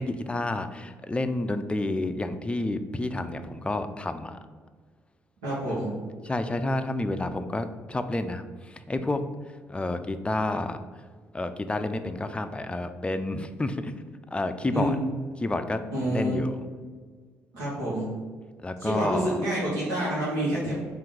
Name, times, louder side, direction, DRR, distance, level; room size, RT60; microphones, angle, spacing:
voice 1, 0.0-4.4 5.6-5.8 6.2-9.2 9.7-10.8 11.3-13.9 14.3-15.0 15.4-15.8 16.1-16.6 18.6-19.4, left 2 dB, 15° left, 9 dB, 0.4 m, -30 dB
voice 2, 5.4-5.9 14.7-15.0 15.9-16.4 17.5-18.1 18.8-20.7, right 1 dB, 85° right, -9 dB, 1.2 m, -28 dB
3.7 x 2.5 x 4.6 m, 1.5 s
hypercardioid pair, 50°, 7 cm